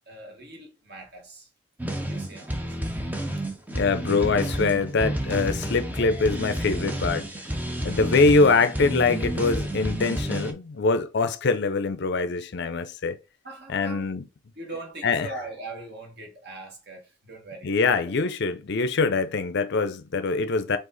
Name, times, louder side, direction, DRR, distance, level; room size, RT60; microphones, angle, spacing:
voice 1, 0.1-1.5 2.0-2.8 7.7-8.1 13.4-14.1 14.5-17.7, right 2 dB, 50° right, 1.5 m, -41 dB
sound 1, 1.8-10.5, right 1 dB, 10° right, 0.5 m, -30 dB
voice 2, 3.7-7.3 7.8-13.2 13.7-14.2 15.0-15.3 17.6-20.8, left 4 dB, 55° left, 0.5 m, -23 dB
4.8 x 2.4 x 3.9 m
head